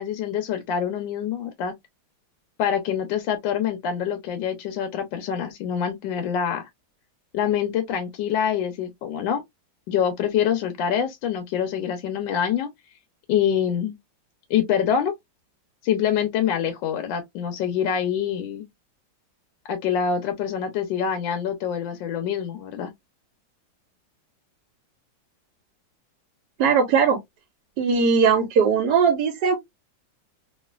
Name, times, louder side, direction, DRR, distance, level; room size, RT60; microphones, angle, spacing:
voice 1, 0.0-1.7 2.6-6.7 7.3-9.4 9.9-12.7 13.3-14.0 14.5-15.1 15.8-18.7 19.7-22.9, left 8 dB, 75° left, 1.2 m, -25 dB
voice 2, 26.6-27.2 27.8-29.6, right 6 dB, 70° right, 1.0 m, -19 dB
3.1 x 2.4 x 2.3 m
omnidirectional pair, 2.1 m